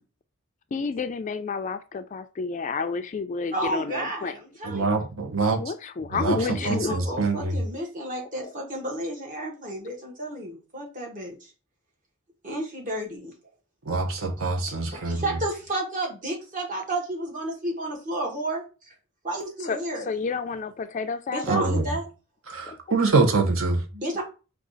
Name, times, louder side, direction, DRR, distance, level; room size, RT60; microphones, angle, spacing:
voice 1, 0.7-4.4 5.6-7.0 8.4-8.5 14.2-14.4 19.6-19.8 20.1-21.6 22.7-22.8, left 4 dB, 35° left, 0.3 m, -30 dB
voice 2, 3.5-4.9 6.4-11.5 12.4-13.3 14.9-18.9 19.2-20.1 21.3-22.1 23.9-24.2, right 1 dB, 40° right, 1.3 m, -32 dB
voice 3, 4.6-5.6 6.1-6.4 6.6-7.6 13.9-15.2 21.5-21.9 22.5-23.8, right 3 dB, 65° right, 0.8 m, -24 dB
4.8 x 2.4 x 3.9 m
head